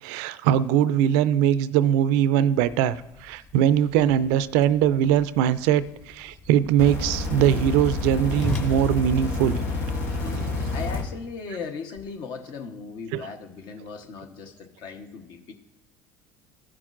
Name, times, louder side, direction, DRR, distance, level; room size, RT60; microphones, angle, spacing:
voice 1, 0.0-3.0 3.2-9.6 13.1-13.3, right 10 dB, 75° right, 16 dB, 0.4 m, -21 dB
Whoosh swoosh swish, 2.5-10.3, left 2 dB, 25° left, 1.8 m, -40 dB
sound 1, 6.8-11.0 12.0-12.1, left 2 dB, 80° left, 1.9 m, -28 dB
voice 2, 10.1-15.5, left 5 dB, 60° left, 5 dB, 1.0 m, -38 dB
14.5 x 6.1 x 2.5 m, 0.89 s
supercardioid pair, 85°, 9 cm